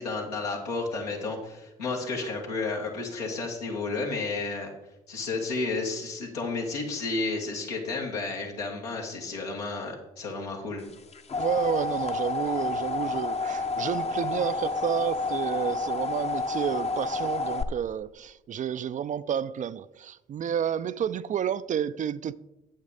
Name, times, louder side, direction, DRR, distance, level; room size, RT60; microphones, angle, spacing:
voice 1, 0.0-4.7 5.1-10.8, left 3 dB, 90° left, 1.7 m, -32 dB
sound 1, 10.9-17.6, left 3 dB, 35° left, 0.8 m, -30 dB
voice 2, 11.4-22.3, right 8 dB, 40° right, 0.4 m, -30 dB
8.7 x 8.0 x 4.1 m
hypercardioid pair, 50°, 20 cm